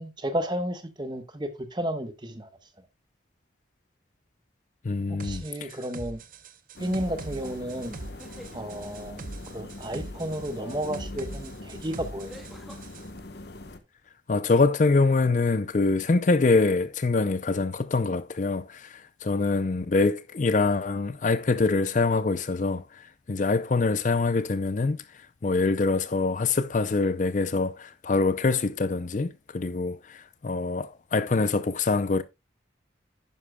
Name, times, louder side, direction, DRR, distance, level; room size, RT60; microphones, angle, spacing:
voice 1, 0.0-2.5 5.1-6.2 6.8-8.0 8.5-12.3, equal, 25° right, 1.0 m, -32 dB
voice 2, 4.8-5.7 14.3-23.0 23.3-25.0 25.4-32.2, left 3 dB, 40° left, 0.4 m, -24 dB
sound 1, 5.2-13.1, right 2 dB, 45° right, 0.7 m, -42 dB
sound 2, 5.4-5.8 8.0-8.6 10.9-11.0 12.3-12.8, equal, ahead, 2.1 m, -48 dB
sound 3, 6.7-13.8, left 2 dB, 60° left, 1.1 m, -42 dB
11.0 x 10.0 x 2.2 m
head